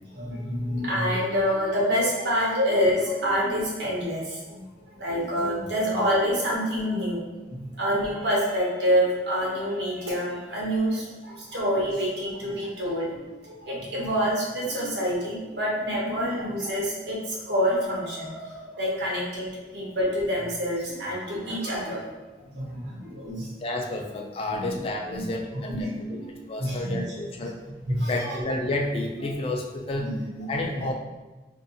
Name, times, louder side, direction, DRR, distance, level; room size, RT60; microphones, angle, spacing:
voice 1, 0.0-7.2 7.5-22.1 22.5-23.5 24.5-24.7 25.1-25.3 25.7-26.3 26.6-27.0 27.9-28.4 30.0-30.5 30.7-30.8, equal, 75° right, -4 dB, 0.8 m, -27 dB
voice 2, 23.6-27.6 28.1-30.1 30.5-30.9, left 2 dB, 35° left, 2 dB, 0.3 m, -30 dB
2.6 x 2.3 x 2.6 m, 1.2 s
head